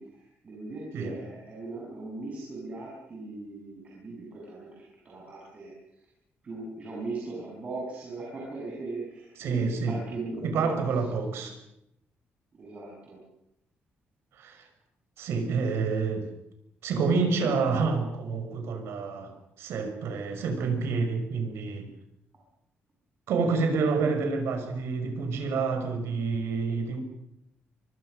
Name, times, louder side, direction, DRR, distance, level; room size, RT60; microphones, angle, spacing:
voice 1, 0.0-5.7 6.4-10.7 11.3-11.5 12.5-13.2, right 3 dB, 30° right, -3 dB, 7.2 m, -39 dB
voice 2, 9.4-10.0 10.4-11.6 14.3-14.7 15.2-16.3 16.8-19.3 19.6-21.9 23.3-27.0, right 4 dB, 75° right, 6 dB, 6.0 m, -28 dB
24.5 x 24.0 x 6.6 m, 0.80 s
cardioid pair, 180°, 4 cm